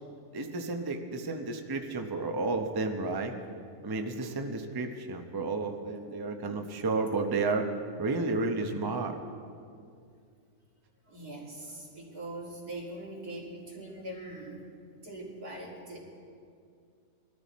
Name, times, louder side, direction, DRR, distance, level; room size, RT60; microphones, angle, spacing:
voice 1, 0.3-3.3 3.8-7.7 8.0-9.2, right 3 dB, 20° right, 4 dB, 0.7 m, -32 dB
voice 2, 11.1-14.7 15.0-16.0, right 1 dB, 80° right, -3 dB, 3.2 m, -42 dB
21.5 x 13.5 x 4.2 m, 2.3 s
omnidirectional pair, 1.6 m